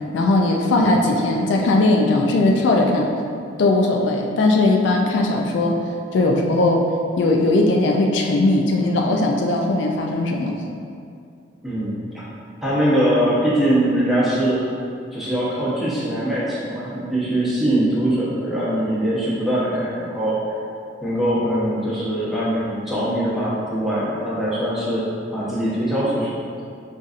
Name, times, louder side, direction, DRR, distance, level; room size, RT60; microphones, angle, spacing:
voice 1, 0.1-3.1 3.6-5.8 6.1-6.8 7.2-10.6, left 2 dB, 75° left, 1 dB, 0.4 m, -18 dB
voice 2, 11.6-12.2 12.6-14.6 15.1-20.4 21.0-25.0 25.3-26.3, right 1 dB, ahead, -10 dB, 0.9 m, -22 dB
5.5 x 2.5 x 2.4 m, 2.4 s
head